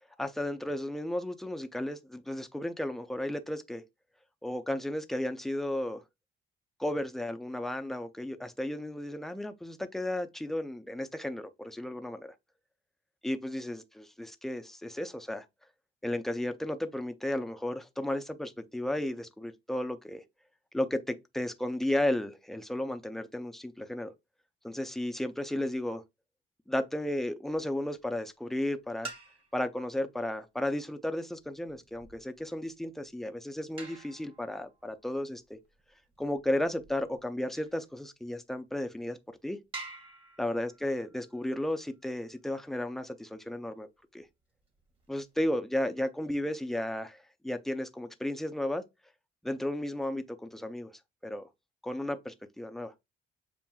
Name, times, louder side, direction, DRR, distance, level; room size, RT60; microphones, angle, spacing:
voice 1, 0.2-3.8 4.4-6.0 6.8-12.3 13.2-15.4 16.0-20.2 20.7-24.1 24.6-26.0 26.7-29.1 29.5-35.6 36.2-39.2 39.4-39.6 40.4-43.9 44.1-44.3 45.1-48.8 49.4-51.5 51.8-52.9, left 1 dB, ahead, 0.5 m, -34 dB
sound 1, 29.0-29.8 31.4-37.8 38.5-38.6 39.1-39.2 39.7-42.4 44.5-45.5, right 3 dB, 25° right, 1.5 m, -49 dB
7.1 x 2.5 x 2.3 m
cardioid pair, 90°, 20 cm